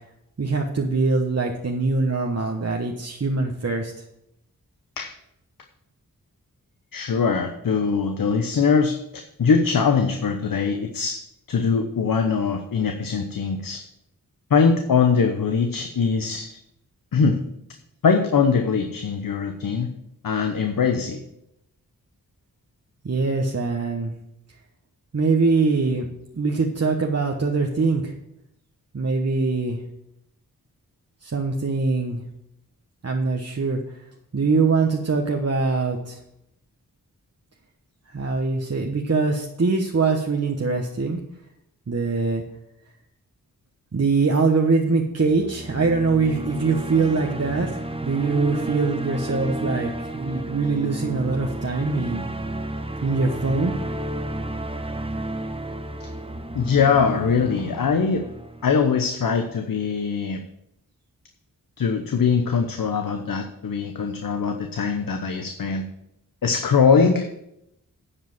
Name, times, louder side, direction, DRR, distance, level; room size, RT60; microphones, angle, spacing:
voice 1, 0.4-3.9 23.0-24.1 25.1-26.1 26.3-28.1 28.9-29.8 31.2-32.2 33.0-34.0 34.3-36.2 38.1-41.2 41.9-42.4 43.9-52.3 53.0-53.8, right 4 dB, 45° right, 1 dB, 1.2 m, -23 dB
voice 2, 6.9-11.2 11.5-13.8 14.5-16.6 17.1-17.4 18.0-19.9 20.2-21.2 56.0-56.1 56.5-58.2 58.6-60.4 61.8-65.8 66.4-67.3, left 5 dB, 65° left, 5 dB, 0.9 m, -22 dB
sound 1, 45.2-59.4, right 1 dB, 15° right, 1.0 m, -32 dB
9.9 x 5.0 x 7.3 m, 0.82 s
cardioid pair, 40°, 36 cm